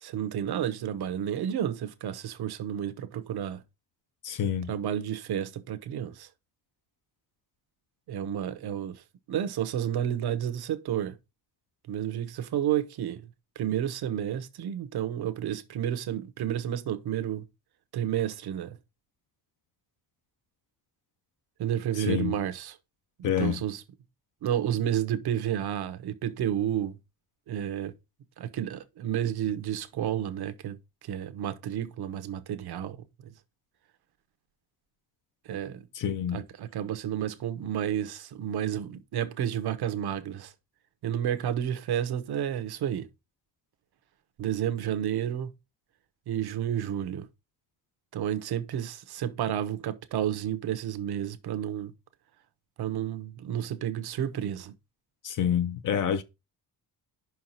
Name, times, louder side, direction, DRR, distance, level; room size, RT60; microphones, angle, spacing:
voice 1, 0.0-3.6 4.7-6.3 8.1-9.0 9.3-11.2 11.9-13.3 13.6-17.5 17.9-18.8 21.6-22.7 23.2-23.8 24.4-27.0 27.5-27.9 28.4-33.3 35.5-35.8 36.3-40.5 41.0-43.1 44.4-45.5 46.3-47.3 48.1-51.9 52.8-54.7, right 10 dB, 75° right, 1.1 m, -31 dB
voice 2, 4.2-4.7 22.0-22.4 23.2-23.6 35.9-36.4 55.2-56.2, left 8 dB, 55° left, 0.6 m, -28 dB
5.7 x 4.6 x 5.6 m
wide cardioid pair, 170°, 38 cm